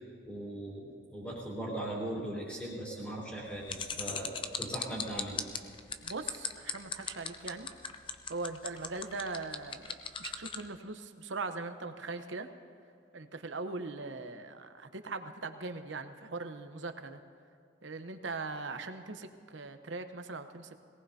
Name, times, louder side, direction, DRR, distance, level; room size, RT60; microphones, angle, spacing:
voice 1, 0.0-5.4, right 1 dB, 5° left, -5 dB, 3.6 m, -39 dB
sound 1, 3.7-10.6, left 7 dB, 25° left, 0.6 m, -37 dB
voice 2, 6.0-7.7 8.3-12.5 13.1-17.2 17.8-20.7, right 3 dB, 75° right, 8 dB, 0.9 m, -40 dB
21.5 x 18.5 x 2.8 m, 2.5 s
head